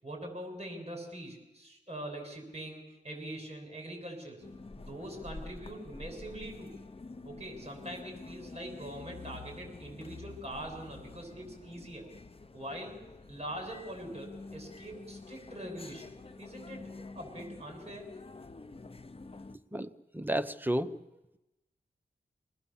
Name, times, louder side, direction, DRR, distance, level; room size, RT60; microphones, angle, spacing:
voice 1, 0.0-4.4 4.8-6.7 7.2-12.1 12.5-13.0 13.3-16.1 16.4-18.1, right 1 dB, 35° right, 3 dB, 7.0 m, -43 dB
sound 1, 4.4-19.6, left 3 dB, 30° left, 0.9 m, -48 dB
voice 2, 19.7-21.0, right 1 dB, 10° right, 10 dB, 0.9 m, -32 dB
28.0 x 20.0 x 7.2 m, 0.99 s
wide cardioid pair, 105°, 18 cm